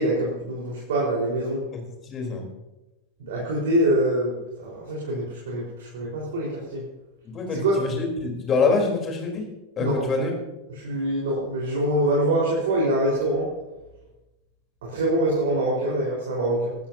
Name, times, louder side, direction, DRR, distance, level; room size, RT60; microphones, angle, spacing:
voice 1, 0.0-1.6 3.2-6.8 7.5-7.8 9.8-10.0 10.7-13.5 14.8-16.8, right 1 dB, 55° right, -4 dB, 4.5 m, -24 dB
voice 2, 1.7-2.5 7.3-9.5 9.8-10.3, left 4 dB, 25° left, 2 dB, 3.8 m, -25 dB
23.5 x 13.0 x 2.8 m, 1.0 s
figure-of-eight pair, 90°, 0 cm